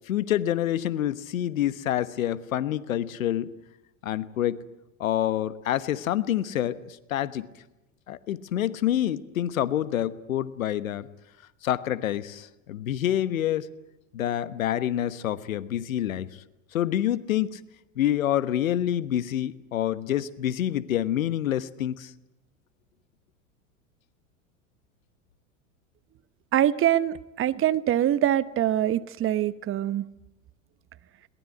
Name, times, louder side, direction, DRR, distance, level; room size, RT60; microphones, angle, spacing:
voice 1, 0.1-3.5 4.0-4.6 5.0-7.5 8.1-11.1 11.6-13.7 14.1-16.3 16.7-17.6 18.0-22.1, left 11 dB, 75° left, 15 dB, 1.2 m, -27 dB
voice 2, 26.5-30.1, right 11 dB, 30° right, 16 dB, 0.9 m, -24 dB
22.0 x 19.0 x 9.6 m, 0.99 s
hypercardioid pair, 85°, 41 cm